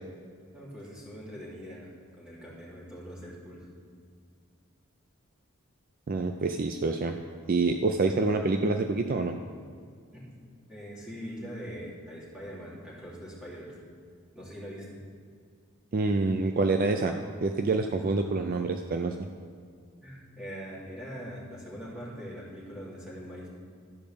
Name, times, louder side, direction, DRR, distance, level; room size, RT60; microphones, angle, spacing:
voice 1, 0.5-3.7 10.1-10.2 10.7-13.8 14.3-14.8 20.0-23.5, equal, 5° right, -8 dB, 2.8 m, -42 dB
voice 2, 6.1-7.2 7.5-9.4 15.9-17.1 17.4-19.2, right 3 dB, 40° right, 5 dB, 0.4 m, -27 dB
13.0 x 5.2 x 6.9 m, 2.1 s
head